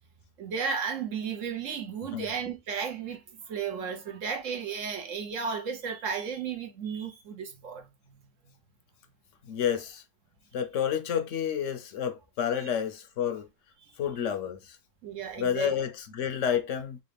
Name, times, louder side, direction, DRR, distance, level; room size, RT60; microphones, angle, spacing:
voice 1, 0.4-7.9 12.5-12.7 15.0-15.7, right 6 dB, 80° right, 1.3 m, -34 dB
voice 2, 9.4-10.0 10.5-13.5 14.0-14.8 15.4-17.0, left 8 dB, 80° left, 1.0 m, -30 dB
3.9 x 2.3 x 3.3 m
omnidirectional pair, 1.3 m